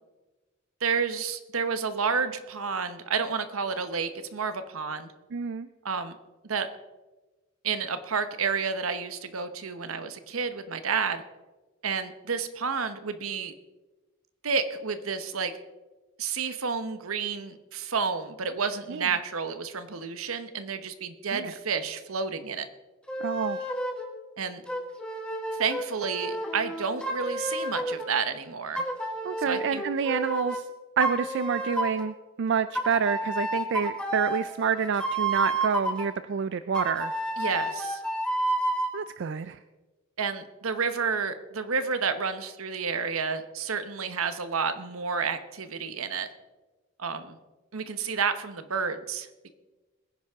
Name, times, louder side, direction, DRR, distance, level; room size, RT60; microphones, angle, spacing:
voice 1, 0.8-5.1 5.8-6.2 6.4-6.7 7.6-11.2 11.8-13.5 14.4-15.5 16.2-22.7 24.4-24.6 25.6-28.8 29.5-29.8 37.4-38.0 40.2-46.3 47.0-47.4 47.7-49.5, right 5 dB, 80° right, 10 dB, 1.0 m, -30 dB
voice 2, 5.3-5.7 18.9-19.1 21.3-21.5 23.2-23.7 29.2-30.7 31.0-37.1 38.9-39.6, right 6 dB, 55° right, 13 dB, 0.4 m, -28 dB
sound 1, 23.1-24.1 24.7-28.1 28.7-30.6 31.0-32.1 32.7-36.1 36.7-38.9, right 1 dB, 5° left, 1.5 m, -30 dB
21.5 x 10.0 x 3.6 m, 1.2 s
head